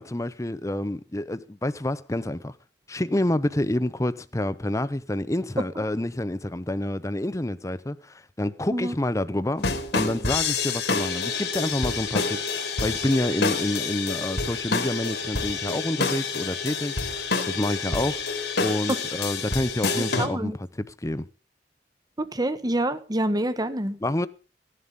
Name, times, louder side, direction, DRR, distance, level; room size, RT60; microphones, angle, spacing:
voice 1, 0.0-2.5 2.9-9.7 9.9-18.2 18.6-21.3 24.0-24.3, left 1 dB, 20° left, 0.7 m, -28 dB
sound 1, 9.6-20.3, left 4 dB, 70° left, 3.0 m, -28 dB
voice 2, 20.0-20.6 22.2-24.0, right 1 dB, 20° right, 1.2 m, -27 dB
16.5 x 11.0 x 5.4 m
head